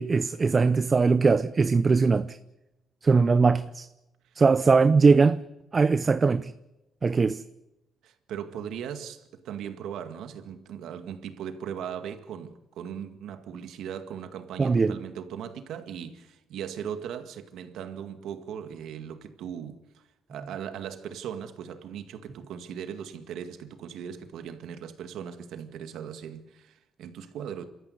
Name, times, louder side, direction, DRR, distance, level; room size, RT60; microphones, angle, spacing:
voice 1, 0.0-2.4 3.0-3.9 4.4-5.4 5.7-6.5 7.0-7.4 14.6-15.0, right 4 dB, 35° right, 0.7 m, -21 dB
voice 2, 8.0-20.0 20.3-27.7, right 8 dB, 80° right, 2.0 m, -38 dB
27.5 x 14.0 x 9.6 m
cardioid pair, 90°, 0 cm